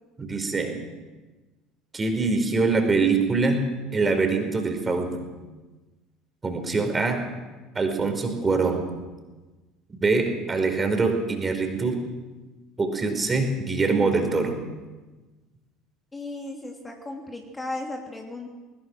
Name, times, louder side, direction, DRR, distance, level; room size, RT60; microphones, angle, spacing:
voice 1, 0.2-0.8 1.9-3.6 3.9-5.3 6.4-7.2 7.7-8.9 10.0-12.0 12.8-14.5, right 4 dB, 25° right, 5 dB, 4.8 m, -24 dB
voice 2, 16.1-18.5, left 2 dB, 15° left, 1 dB, 3.1 m, -35 dB
20.5 x 20.0 x 6.4 m, 1.2 s
figure-of-eight pair, 65°, 0 cm